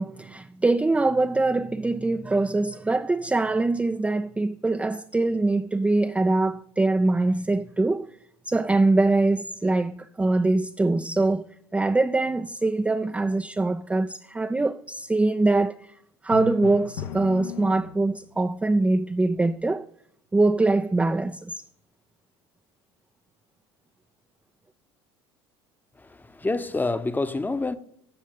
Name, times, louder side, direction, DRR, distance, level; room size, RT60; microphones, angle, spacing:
voice 1, 0.0-8.1 8.4-11.5 11.7-15.9 16.2-19.9 20.3-21.6, right 2 dB, 10° right, 0.5 m, -23 dB
Drum, 16.3-18.3, left 8 dB, 70° left, 1.0 m, -36 dB
voice 2, 26.0-27.8, left 3 dB, 15° left, 0.9 m, -27 dB
15.5 x 6.2 x 3.9 m
hypercardioid pair, 70°, 14 cm